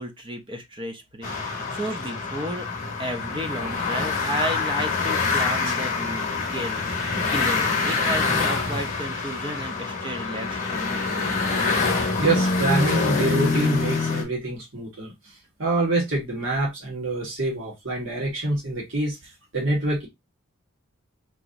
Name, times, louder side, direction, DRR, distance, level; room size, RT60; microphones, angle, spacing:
voice 1, 0.0-2.7 3.0-6.2 6.5-11.4, equal, 25° right, 0.6 m, -33 dB
sound 1, 1.2-14.2, left 4 dB, 40° left, 1.0 m, -25 dB
voice 2, 12.2-15.3 15.6-19.2 19.5-20.1, right 2 dB, 65° right, 1.8 m, -26 dB
4.7 x 2.9 x 2.5 m
head